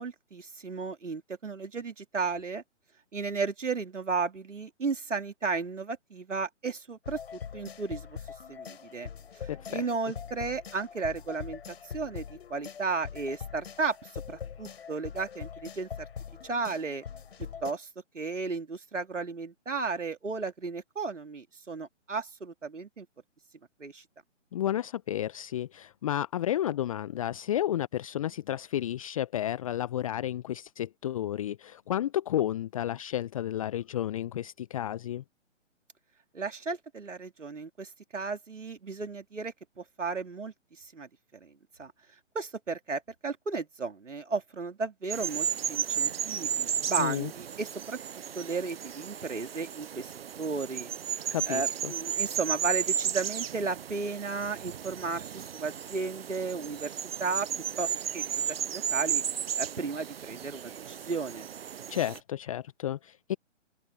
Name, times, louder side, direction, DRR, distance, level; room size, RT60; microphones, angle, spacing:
voice 1, 0.0-2.6 3.1-8.2 8.5-9.1 9.4-16.1 16.4-17.0 17.6-17.9 18.1-23.1 23.8-24.0 36.3-41.5 41.8-41.9 42.3-48.0 48.3-50.9 51.3-57.5 57.8-59.2 59.6-61.5, right 4 dB, 75° right, 2.9 m, -34 dB
sound 1, 7.0-17.7, left 7 dB, 55° left, 5.9 m, -43 dB
voice 2, 9.5-9.8 24.5-35.2 47.0-47.3 51.3-51.9 61.9-63.4, left 12 dB, 30° left, 0.8 m, -32 dB
sound 2, 45.1-62.2, right 8 dB, 55° right, 0.5 m, -34 dB
open air
figure-of-eight pair, 135°, 37 cm